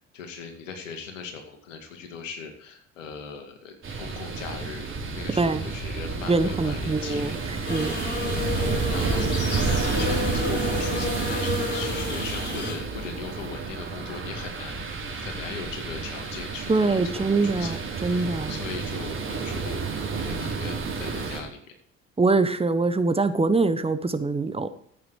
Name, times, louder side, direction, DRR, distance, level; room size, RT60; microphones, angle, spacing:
voice 1, 0.1-7.5 8.3-14.8 15.1-19.9 20.1-21.6, left 5 dB, 80° left, 4 dB, 2.3 m, -39 dB
sound 1, 3.8-21.4, right 4 dB, 30° right, 4.4 m, -30 dB
voice 2, 6.3-7.4 7.7-8.0 16.7-17.8 18.0-18.6 22.2-24.7, right 3 dB, 15° right, 10 dB, 1.1 m, -23 dB
sound 2, 7.7-12.8, left 3 dB, 30° left, 4.1 m, -31 dB
14.0 x 8.8 x 4.8 m, 0.63 s
hypercardioid pair, 65°, 38 cm